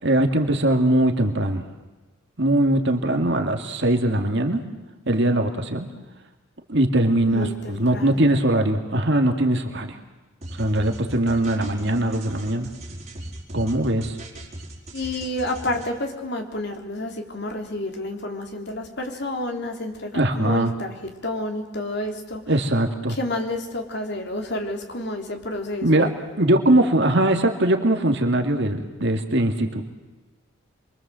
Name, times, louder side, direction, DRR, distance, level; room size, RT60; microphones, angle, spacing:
voice 1, 0.0-1.6 2.4-4.6 5.1-5.9 6.7-10.0 10.5-12.7 13.5-14.2 20.1-20.7 22.5-23.2 25.8-26.1 26.4-29.8, right 1 dB, 55° right, 4 dB, 2.4 m, -21 dB
voice 2, 7.3-8.3 14.9-20.9 21.2-22.4 23.1-26.1, left 1 dB, 50° left, 4 dB, 3.4 m, -30 dB
sound 1, 10.4-15.9, right 1 dB, 30° right, 4.8 m, -39 dB
27.5 x 23.5 x 7.7 m, 1.2 s
head